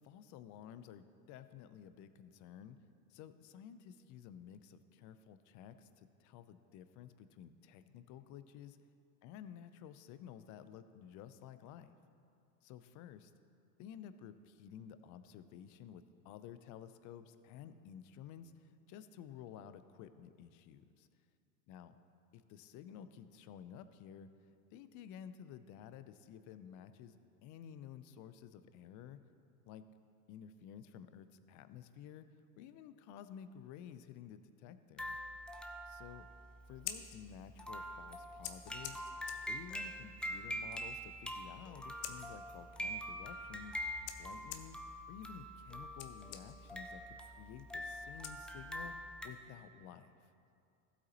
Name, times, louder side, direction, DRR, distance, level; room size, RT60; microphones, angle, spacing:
voice 1, 0.0-2.8 3.1-8.8 9.2-11.9 12.6-13.3 13.8-21.1 21.7-21.9 22.3-24.4 24.7-27.2 27.4-29.2 29.6-29.9 30.3-32.3 32.6-35.2 35.9-36.3 36.7-39.0 39.5-43.8 44.2-44.8 45.1-48.9 49.2-50.1, left 9 dB, 45° left, 12 dB, 0.6 m, -53 dB
sound 1, 35.0-49.3, equal, 5° left, 0.3 m, -45 dB
Scissors, 36.6-49.0, left 10 dB, 65° left, 0.9 m, -52 dB
15.0 x 8.3 x 3.0 m, 2.5 s
hypercardioid pair, 90°, 43 cm